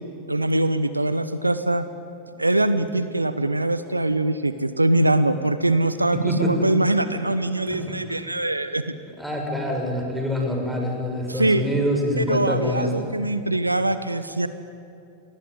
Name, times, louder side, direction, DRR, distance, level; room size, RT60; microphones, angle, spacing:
voice 1, 0.3-1.8 2.4-8.8 11.3-11.6 12.2-14.5, right 2 dB, 85° right, 12 dB, 1.0 m, -22 dB
voice 2, 6.1-6.7 7.7-8.2 9.2-13.1, equal, 5° right, 1 dB, 6.6 m, -26 dB
28.5 x 22.5 x 9.4 m, 2.6 s
figure-of-eight pair, 90°, 0 cm